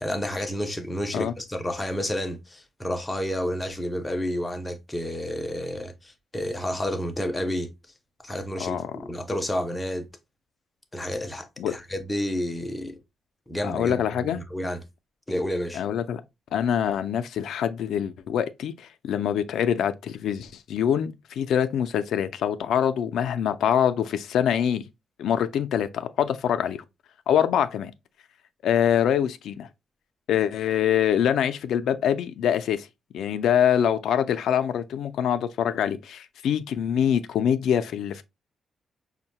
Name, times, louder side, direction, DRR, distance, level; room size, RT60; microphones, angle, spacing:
voice 1, 0.0-7.7 8.2-10.1 10.9-13.0 13.5-14.8 15.3-15.8, equal, 10° left, 0.4 m, -30 dB
voice 2, 8.6-8.9 11.6-11.7 13.6-14.4 15.7-16.2 16.5-24.8 25.2-26.8 27.3-27.9 28.6-29.7 30.3-32.9 33.1-38.2, left 9 dB, 75° left, 0.3 m, -24 dB
5.2 x 2.1 x 2.7 m
wide cardioid pair, 175°, 0 cm